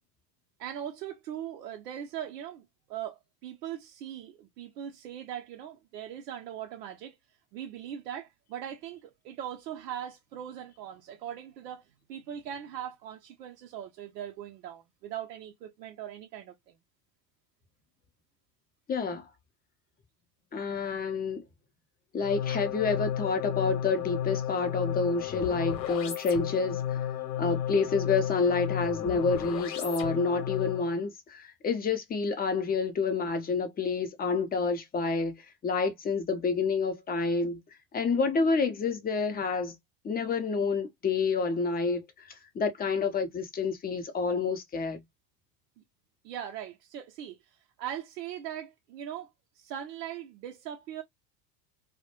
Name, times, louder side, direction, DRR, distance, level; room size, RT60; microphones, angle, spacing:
voice 1, 0.6-7.2 7.5-16.8 46.2-47.4 47.8-51.0, right 10 dB, 70° right, 0.6 m, -40 dB
voice 2, 18.9-19.3 20.5-21.4 22.1-27.0 27.4-35.3 35.6-37.6 37.9-39.7 40.0-45.0, left 4 dB, 20° left, 0.5 m, -28 dB
sound 1, 22.2-31.0, left 10 dB, 80° left, 0.7 m, -33 dB
2.2 x 2.0 x 2.8 m
hypercardioid pair, 75°, 49 cm